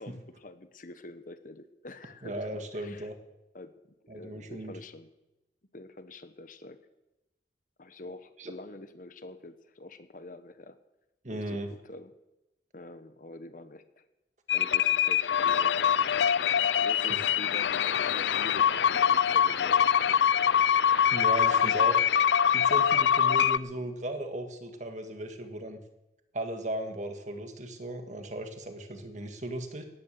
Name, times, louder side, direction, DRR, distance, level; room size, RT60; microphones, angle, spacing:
voice 1, 0.0-2.5 2.8-3.1 3.5-3.7 4.0-5.1 5.7-6.8 7.8-10.8 11.3-12.1 12.7-14.1 14.5-16.3 16.6-19.9, left 2 dB, 50° left, 10 dB, 1.2 m, -46 dB
voice 2, 2.2-3.2 4.1-4.8 8.4-8.5 11.2-11.7 21.1-22.0 22.5-25.8 26.3-29.8, right 1 dB, 45° right, 6 dB, 1.8 m, -36 dB
sound 1, 14.5-23.6, left 8 dB, 75° left, 0.4 m, -24 dB
17.5 x 11.0 x 6.8 m, 0.97 s
head